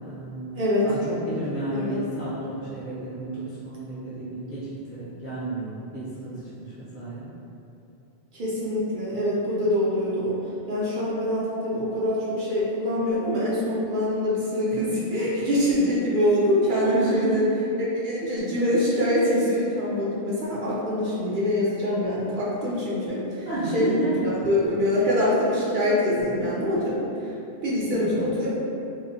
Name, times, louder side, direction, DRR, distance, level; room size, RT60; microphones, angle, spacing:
voice 1, 0.0-7.3 16.8-17.4 23.4-24.4 27.9-28.3, right 2 dB, 15° left, -13 dB, 0.6 m, -31 dB
voice 2, 0.6-0.9 1.7-2.0 8.3-10.4 10.7-17.4 17.9-23.5 23.7-23.9 24.2-27.0 27.6-28.5, left 1 dB, 55° right, -7 dB, 0.6 m, -24 dB
2.8 x 2.1 x 2.7 m, 2.7 s
omnidirectional pair, 1.1 m